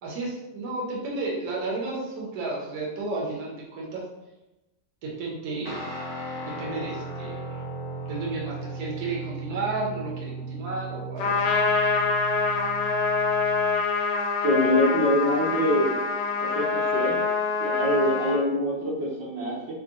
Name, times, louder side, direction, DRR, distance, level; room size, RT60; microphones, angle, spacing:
voice 1, 0.0-4.0 5.0-5.9 6.4-7.6 8.1-11.5, right 3 dB, 60° right, -4 dB, 1.2 m, -32 dB
Guitar, 5.6-13.8, right 3 dB, 20° left, 0.6 m, -36 dB
Trumpet, 11.2-18.4, left 4 dB, 90° left, 1.2 m, -25 dB
voice 2, 14.4-16.0 16.4-17.2 17.6-19.7, left 1 dB, 85° right, -5 dB, 1.7 m, -25 dB
3.6 x 2.1 x 3.9 m, 0.98 s
omnidirectional pair, 1.8 m